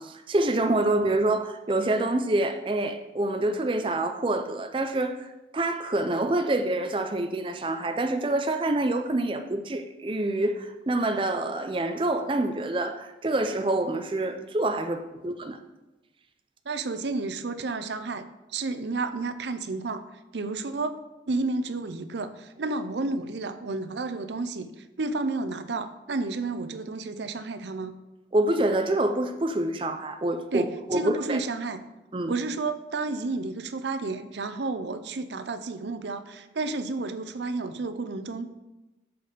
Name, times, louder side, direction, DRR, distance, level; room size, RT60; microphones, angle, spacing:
voice 1, 0.0-5.3 5.5-15.6 28.3-31.4 32.1-32.3, right 2 dB, 30° right, 0.5 m, -26 dB
voice 2, 16.7-18.3 18.5-20.0 20.3-21.0 21.3-24.7 25.0-27.9 30.5-31.8 32.3-38.5, right 3 dB, 80° right, 0.6 m, -31 dB
7.7 x 4.1 x 6.6 m
head